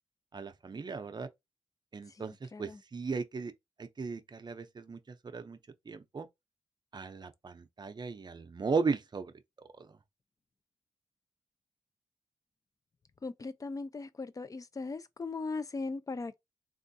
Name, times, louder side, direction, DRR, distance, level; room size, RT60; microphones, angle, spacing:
voice 1, 0.3-1.3 1.9-3.5 3.8-5.0 5.2-5.6 5.9-6.3 6.9-9.3 9.8-9.9, right 4 dB, 40° right, 0.6 m, -36 dB
voice 2, 2.1-2.8 13.2-16.4, left 3 dB, 30° left, 0.4 m, -39 dB
3.5 x 2.4 x 2.6 m
cardioid pair, 80°, 11 cm